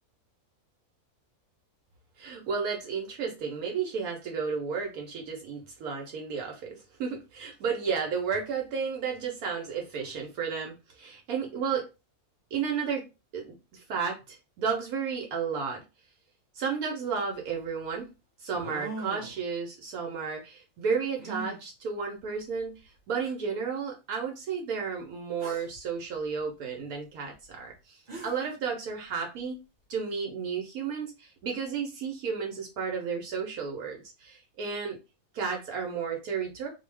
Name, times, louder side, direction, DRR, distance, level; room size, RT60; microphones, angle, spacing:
voice 1, 2.2-11.9 12.5-13.0 13.3-15.8 16.5-18.1 18.4-29.6 29.9-35.0 35.3-36.7, right 6 dB, 75° right, 1 dB, 1.1 m, -33 dB
sound 1, 17.1-17.2 18.5-19.4 21.2-21.6 22.6-22.7 23.2-23.3 25.4-25.8 27.7-27.8 28.1-28.6, right 3 dB, 40° right, 1.0 m, -40 dB
2.7 x 2.1 x 3.2 m, 0.28 s
omnidirectional pair, 1.6 m